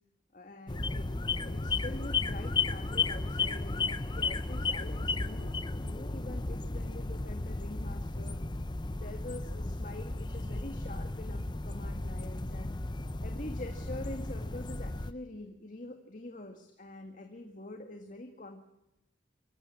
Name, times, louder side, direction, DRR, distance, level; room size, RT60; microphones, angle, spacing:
voice 1, 0.3-1.1 1.4-8.4 9.0-12.8 13.2-18.6, left 1 dB, 40° left, 5 dB, 1.9 m, -45 dB
sound 1, 0.7-15.1, left 3 dB, 25° left, 0.7 m, -34 dB
25.0 x 15.0 x 8.6 m, 0.88 s
head